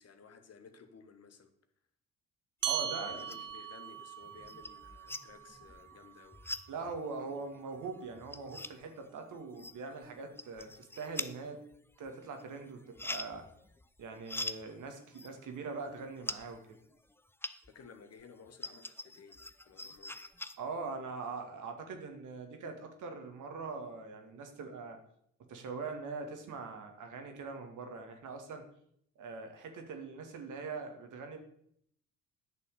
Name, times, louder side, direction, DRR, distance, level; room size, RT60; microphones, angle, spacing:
voice 1, 0.0-1.5 2.8-6.4 9.6-9.7 17.7-20.2, left 5 dB, 40° left, 7 dB, 1.5 m, -56 dB
sound 1, 2.6-3.6 3.9-17.9 18.2-20.6, left 2 dB, 5° left, 0.7 m, -44 dB
voice 2, 2.6-3.2 6.7-11.6 12.0-13.5 14.0-16.6 20.6-25.0 25.5-28.6 29.2-31.4, right 4 dB, 50° right, 5 dB, 2.1 m, -42 dB
sound 2, 2.6-7.4, right 10 dB, 80° right, 0.7 m, -41 dB
10.5 x 6.8 x 6.8 m, 0.70 s
figure-of-eight pair, 45°, 38 cm